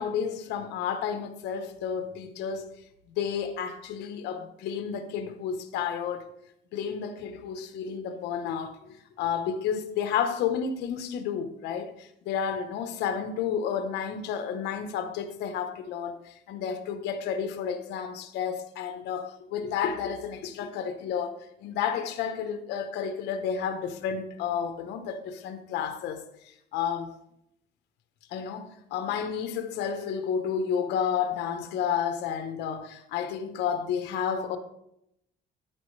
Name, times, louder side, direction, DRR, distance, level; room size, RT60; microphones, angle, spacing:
voice 1, 0.0-2.7 3.1-6.3 6.7-27.1 28.3-34.6, left 7 dB, 85° left, 1.1 m, -31 dB
11.0 x 8.9 x 3.3 m
cardioid pair, 110°, 17 cm